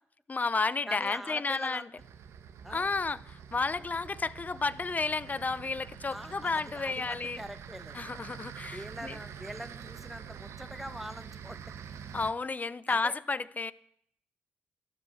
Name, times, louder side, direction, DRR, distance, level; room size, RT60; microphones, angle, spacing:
voice 1, 0.3-1.9 2.7-7.4 7.9-9.2 12.1-13.7, left 4 dB, 35° left, 0.8 m, -32 dB
voice 2, 0.9-1.9 2.6-2.9 6.1-8.0 8.7-11.7 12.5-12.6 12.9-13.1, equal, 5° right, 1.8 m, -43 dB
sound 1, 2.0-12.3, right 8 dB, 80° right, 1.4 m, -46 dB
13.0 x 12.0 x 7.9 m
cardioid pair, 65°, 5 cm